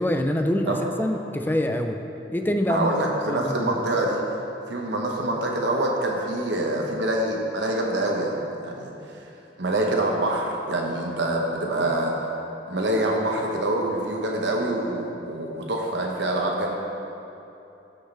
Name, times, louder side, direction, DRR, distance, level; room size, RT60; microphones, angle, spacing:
voice 1, 0.0-2.0 2.3-2.9 3.3-3.7, left 1 dB, 10° left, 4 dB, 0.5 m, -25 dB
voice 2, 2.7-4.2 4.7-8.9 9.6-12.1 12.7-16.8, right 1 dB, 70° right, -1 dB, 1.1 m, -25 dB
15.0 x 6.5 x 3.4 m, 2.9 s
head